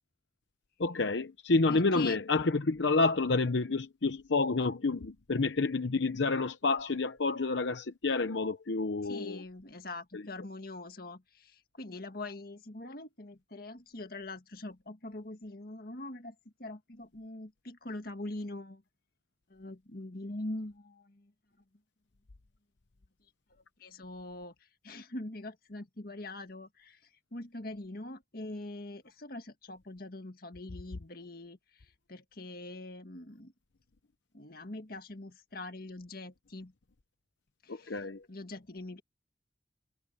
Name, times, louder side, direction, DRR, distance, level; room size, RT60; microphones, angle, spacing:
voice 1, 0.8-9.4 10.1-10.2 37.7-38.2, left 3 dB, 75° left, 0.8 m, -29 dB
voice 2, 1.7-2.2 9.0-16.3 16.6-18.8 19.5-21.3 23.8-24.5 24.8-27.0 27.3-31.6 32.1-33.5 34.3-36.7 37.6-39.0, left 2 dB, 50° left, 1.9 m, -43 dB
head